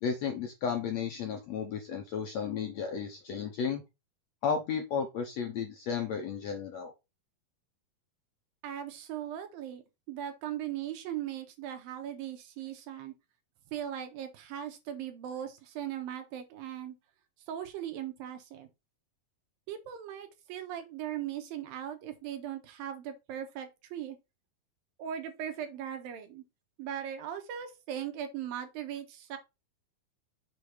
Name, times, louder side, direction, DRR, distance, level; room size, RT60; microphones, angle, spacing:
voice 1, 0.0-3.8 4.4-6.9, left 6 dB, 70° left, 1.7 m, -33 dB
voice 2, 8.6-9.8 10.1-13.1 13.7-17.0 17.5-18.7 19.7-24.2 25.0-26.4 26.8-29.4, right 10 dB, 80° right, 2.9 m, -39 dB
6.9 x 3.3 x 6.2 m
omnidirectional pair, 4.2 m